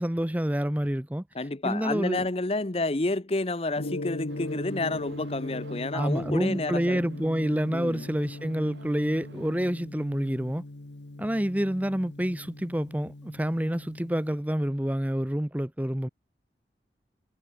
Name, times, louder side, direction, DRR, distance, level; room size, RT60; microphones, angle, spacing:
voice 1, 0.0-1.2 1.6-2.3 5.9-10.6 11.2-16.1, equal, 10° right, 0.7 m, -28 dB
voice 2, 1.3-7.0 7.7-8.0, left 2 dB, 35° left, 0.9 m, -30 dB
Gong, 3.8-14.4, left 2 dB, 85° left, 1.3 m, -39 dB
sound 1, 4.3-9.7, right 1 dB, 85° right, 3.7 m, -49 dB
head